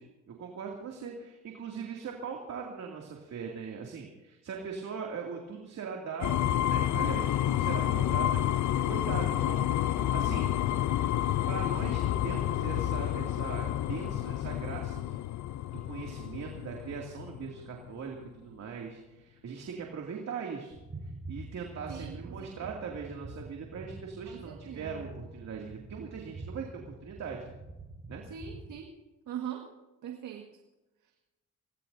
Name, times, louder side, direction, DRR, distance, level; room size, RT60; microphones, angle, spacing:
voice 1, 0.0-10.5 11.5-15.2 15.7-20.7 21.0-27.4 28.1-28.2, right 6 dB, 60° right, 0 dB, 2.6 m, -40 dB
sound 1, 6.2-18.0, left 12 dB, 70° left, 0.6 m, -29 dB
sound 2, 20.7-28.8, right 2 dB, 30° right, 5.4 m, -45 dB
voice 2, 21.9-22.7 24.3-25.0 28.3-28.9 29.3-29.6 30.0-30.5, right 9 dB, 85° right, 2 dB, 1.8 m, -41 dB
25.0 x 18.5 x 2.7 m, 1.1 s
cardioid pair, 90°, 30 cm